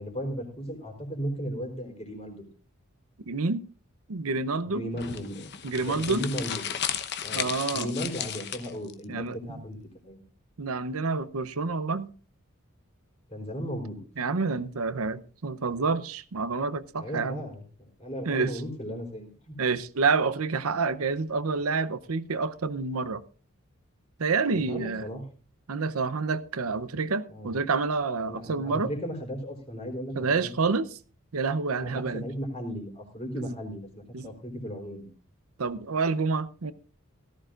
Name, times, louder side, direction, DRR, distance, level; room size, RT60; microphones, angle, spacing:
voice 1, 0.0-2.5 4.7-6.6 7.2-9.8 10.0-10.2 13.3-14.0 17.0-19.6 24.5-25.2 27.3-27.6 28.3-30.5 31.8-35.1, equal, 30° left, 3.6 m, -36 dB
voice 2, 3.2-3.6 4.1-4.9 5.6-6.3 7.3-7.9 9.1-9.4 10.6-12.1 14.2-17.4 18.3-18.5 19.6-23.2 24.2-25.0 25.7-28.9 30.2-30.9 31.3-32.2 33.4-33.5 34.1-34.3 35.6-36.7, right 4 dB, 80° right, 0.7 m, -28 dB
sound 1, 5.0-8.9, left 9 dB, 50° left, 0.9 m, -34 dB
17.5 x 14.0 x 2.5 m
head